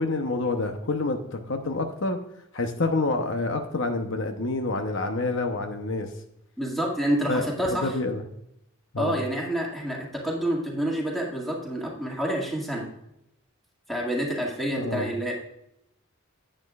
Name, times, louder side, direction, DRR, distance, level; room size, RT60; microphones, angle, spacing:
voice 1, 0.0-2.2 2.5-6.1 7.3-7.4 7.7-8.2 8.9-9.2 14.8-15.1, left 2 dB, 60° left, 5 dB, 0.9 m, -27 dB
voice 2, 6.6-7.9 9.0-12.8 13.9-15.3, right 1 dB, ahead, -2 dB, 2.0 m, -28 dB
10.5 x 8.9 x 2.4 m, 0.80 s
head